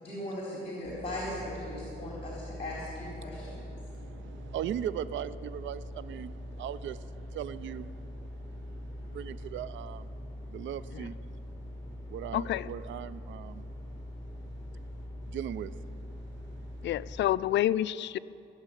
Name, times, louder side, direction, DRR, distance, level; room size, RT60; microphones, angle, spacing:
voice 1, 0.0-3.7, left 1 dB, 30° left, -5 dB, 4.0 m, -38 dB
sound 1, 0.8-17.2, left 1 dB, 15° left, 4.3 m, -43 dB
voice 2, 3.3-10.1 10.5-11.2 12.1-13.7 15.3-15.7, right 10 dB, 70° right, 16 dB, 0.5 m, -39 dB
voice 3, 12.3-12.7 16.8-18.2, left 13 dB, 65° left, 18 dB, 0.4 m, -28 dB
18.0 x 7.4 x 9.8 m, 2.8 s
cardioid pair, 90°, 20 cm